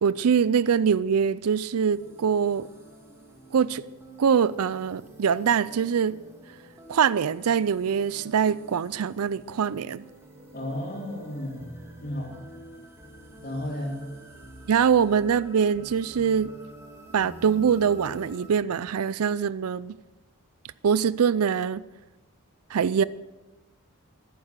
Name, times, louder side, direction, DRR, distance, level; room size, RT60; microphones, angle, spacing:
voice 1, 0.0-2.7 3.5-3.8 4.2-6.2 6.9-10.0 14.7-16.5 17.1-19.9 20.8-21.8 22.7-23.0, right 7 dB, 80° right, 0.4 m, -23 dB
sound 1, 1.9-18.5, right 1 dB, 10° right, 2.0 m, -47 dB
voice 2, 10.5-11.7 12.0-12.3 13.4-14.0, left 1 dB, 45° left, 3.7 m, -33 dB
14.5 x 11.5 x 6.6 m
head